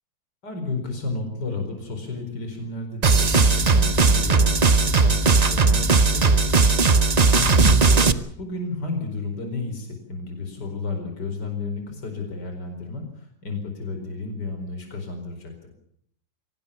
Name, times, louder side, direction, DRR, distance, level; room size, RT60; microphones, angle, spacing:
voice 1, 0.4-15.7, left 3 dB, 55° left, 5 dB, 5.3 m, -32 dB
sound 1, 3.0-8.1, right 4 dB, 60° right, 0.4 m, -17 dB
24.0 x 18.5 x 7.1 m, 0.68 s
omnidirectional pair, 2.2 m